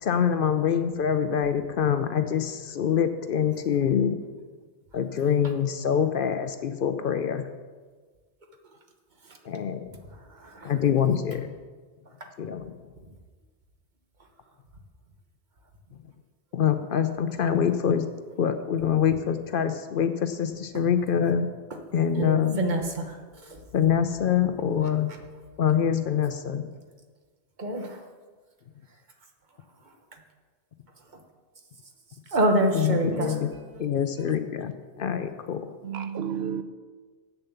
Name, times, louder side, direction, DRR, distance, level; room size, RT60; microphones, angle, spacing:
voice 1, 0.0-4.2 4.9-7.5 9.4-10.0 10.6-11.6 12.4-12.8 15.9-16.0 16.5-18.1 18.4-21.5 21.9-22.6 23.7-25.1 25.6-26.7 32.7-33.5 33.8-35.7, left 8 dB, 60° left, 0.7 m, -25 dB
voice 2, 22.2-23.2 23.5-23.6 27.6-28.0 32.3-33.3, right 1 dB, 45° right, 1.2 m, -26 dB
voice 3, 33.1-33.5 35.8-36.6, right 8 dB, 75° right, 0.8 m, -32 dB
8.1 x 7.0 x 6.9 m
omnidirectional pair, 1.1 m